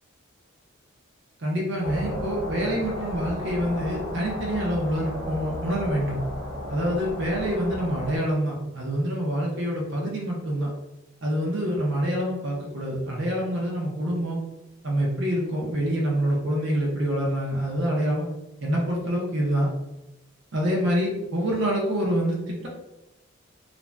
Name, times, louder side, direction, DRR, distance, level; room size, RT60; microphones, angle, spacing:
voice 1, 1.4-6.2 6.7-10.7 11.2-14.4 14.8-18.3 18.6-19.7 20.5-22.7, equal, 55° right, -3 dB, 0.6 m, -26 dB
sound 1, 1.8-8.2, left 1 dB, 65° left, 0.7 m, -34 dB
2.5 x 2.1 x 3.2 m, 0.94 s
head